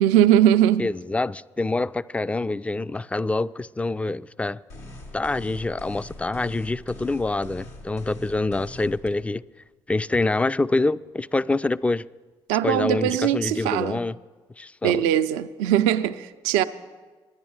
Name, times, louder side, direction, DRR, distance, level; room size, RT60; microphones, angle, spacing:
voice 1, 0.0-0.9 12.5-14.0 14.8-16.6, right 11 dB, 90° right, 0.4 m, -20 dB
voice 2, 0.8-4.6 5.1-9.4 9.9-12.1 12.6-14.2 14.6-15.0, left 2 dB, 10° left, 0.3 m, -26 dB
sound 1, 4.7-9.1, left 1 dB, 85° left, 2.2 m, -42 dB
11.0 x 10.5 x 8.8 m
supercardioid pair, 60°, 11 cm